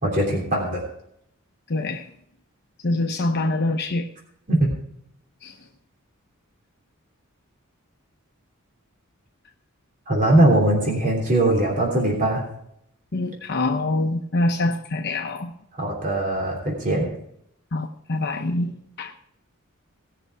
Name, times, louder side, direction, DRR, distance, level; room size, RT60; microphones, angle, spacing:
voice 1, 0.0-0.8 4.5-4.7 10.1-12.4 15.8-17.1, right 1 dB, 35° right, -2 dB, 3.1 m, -20 dB
voice 2, 1.7-2.1 2.8-4.1 5.4-5.6 13.1-15.5 17.7-19.1, left 2 dB, 50° left, 2 dB, 0.9 m, -25 dB
18.0 x 6.7 x 4.7 m, 0.73 s
head